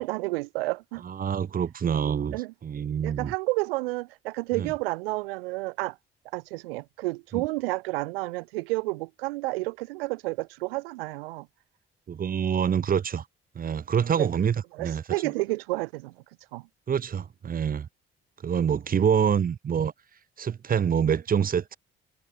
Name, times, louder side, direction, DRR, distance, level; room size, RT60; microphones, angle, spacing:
voice 1, 0.0-1.0 2.3-2.5 3.0-6.0 6.3-11.5 14.2-14.3 14.7-16.1 16.5-16.6, right 22 dB, 70° right, 0.6 m, -30 dB
voice 2, 1.0-3.3 4.5-4.7 7.3-7.4 12.1-13.3 13.5-15.3 16.9-17.9 18.4-19.9 20.4-21.8, right 7 dB, 30° right, 0.7 m, -26 dB
figure-of-eight pair, 40°, 30 cm